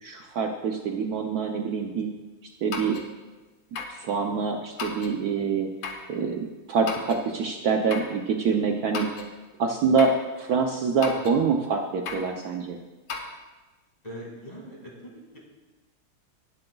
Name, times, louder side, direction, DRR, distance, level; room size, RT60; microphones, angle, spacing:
voice 1, 0.0-2.1 2.6-3.0 4.0-5.7 6.1-9.1 9.6-12.8, right 5 dB, 85° right, 3 dB, 0.8 m, -25 dB
sound 1, 2.7-3.1 3.7-4.0 4.8-5.2 5.8-6.1 6.9-7.2 7.9-8.1 8.9-9.3 10.0-10.2 11.0-11.4 12.1-12.3 13.1-13.3, left 5 dB, 90° left, 2.0 m, -34 dB
voice 2, 14.0-15.4, equal, 20° left, -3 dB, 2.3 m, -41 dB
19.5 x 7.8 x 2.3 m, 1.2 s
omnidirectional pair, 2.4 m